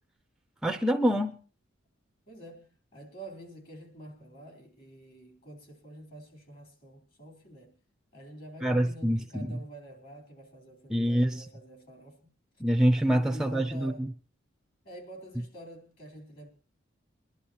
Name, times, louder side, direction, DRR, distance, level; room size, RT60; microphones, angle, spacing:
voice 1, 0.6-1.4 8.6-9.6 10.9-11.5 12.6-14.1, equal, 5° right, 0.6 m, -26 dB
voice 2, 2.3-7.8 8.1-12.3 13.1-14.1 14.8-16.5, right 1 dB, 50° left, 3.9 m, -47 dB
23.0 x 11.5 x 2.9 m
head